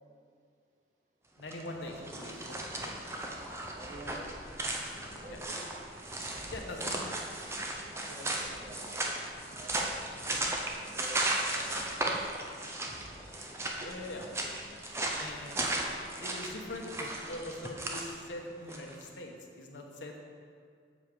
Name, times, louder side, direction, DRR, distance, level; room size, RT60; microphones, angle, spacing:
voice 1, 1.4-3.1 5.3-5.4 6.5-7.0 13.8-14.2 15.0-20.2, left 1 dB, 85° left, 1 dB, 1.1 m, -43 dB
sound 1, 1.4-19.0, right 1 dB, 15° right, 0.6 m, -36 dB
voice 2, 3.7-4.6 4.9-5.0 5.2-5.6 6.3-7.1 7.9-10.0 10.9-12.4 13.8-13.9, equal, 40° right, -1 dB, 1.2 m, -49 dB
sound 2, 4.9-16.0 16.6-18.2, left 1 dB, 30° left, 1.1 m, -55 dB
7.4 x 7.0 x 4.9 m, 2.2 s
head